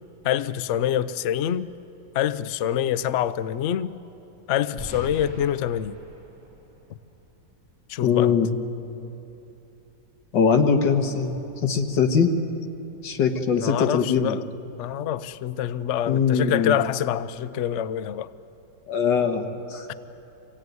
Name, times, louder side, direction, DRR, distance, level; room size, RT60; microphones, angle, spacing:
voice 1, 0.2-1.7 2.1-3.9 4.5-6.0 7.9-8.4 13.6-14.4 14.8-18.3 19.9-20.0, left 10 dB, 85° left, 0.6 m, -26 dB
sound 1, 4.8-7.7, equal, 10° right, 2.9 m, -42 dB
voice 2, 8.0-8.5 10.3-12.3 13.0-14.4 16.1-16.8 18.9-19.9, left 6 dB, 70° left, 2.1 m, -22 dB
25.5 x 17.5 x 9.4 m
omnidirectional pair, 2.0 m